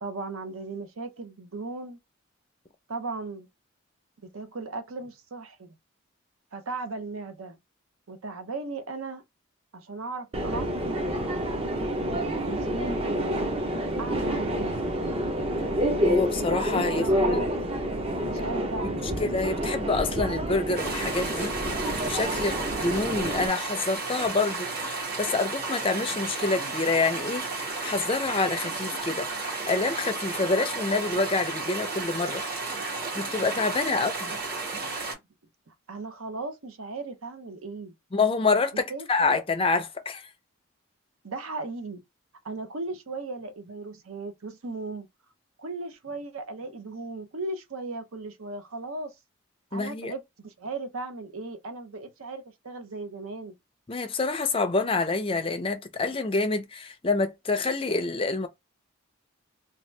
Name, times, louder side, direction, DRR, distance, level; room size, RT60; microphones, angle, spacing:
voice 1, 0.0-2.0 2.9-3.5 4.2-5.7 6.5-7.6 8.1-9.2 9.7-11.0 12.5-13.6 14.0-15.1 16.9-17.6 18.3-19.3 33.9-34.1 35.7-37.9 38.9-39.4 41.2-42.0 42.4-45.1 45.6-49.1 49.7-53.6, right 3 dB, 75° right, 0.7 m, -37 dB
Subway metro underground, 10.3-23.5, equal, 25° right, 0.5 m, -28 dB
voice 2, 16.0-17.4 19.0-21.5 22.0-32.4 33.1-34.4 38.1-40.3 49.7-50.1 53.9-58.5, left 3 dB, 25° left, 0.4 m, -27 dB
sound 1, 20.8-35.1, right 3 dB, 45° right, 1.4 m, -33 dB
2.8 x 2.3 x 3.2 m
head